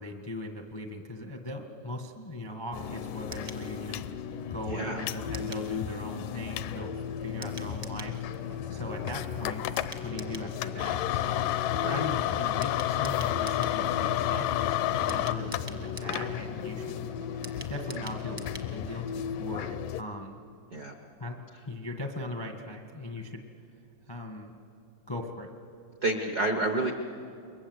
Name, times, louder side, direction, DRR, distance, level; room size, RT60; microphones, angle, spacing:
voice 1, 0.0-4.1 4.5-6.9 7.2-8.2 8.7-9.6 10.0-11.5 11.9-17.0 17.7-18.4 18.7-20.4 21.2-21.4 21.7-23.4 24.1-24.5 25.1-25.5, left 1 dB, 35° left, 3 dB, 0.4 m, -39 dB
sound 1, 2.7-20.0, left 11 dB, 85° left, 2.3 m, -32 dB
sound 2, 3.3-3.6 5.3-5.7 7.4-8.1 9.8-10.5 12.6-13.8 15.1-16.3 17.4-18.7 19.0-19.1 19.4-19.5, right 1 dB, 25° right, 0.5 m, -45 dB
sound 3, 4.2-19.1, right 1 dB, 85° right, 6.1 m, -51 dB
voice 2, 4.7-5.0 11.8-12.0 20.7-21.0 26.0-26.9, right 2 dB, 70° right, 5 dB, 0.9 m, -29 dB
29.0 x 22.5 x 8.0 m, 2.6 s
omnidirectional pair, 3.7 m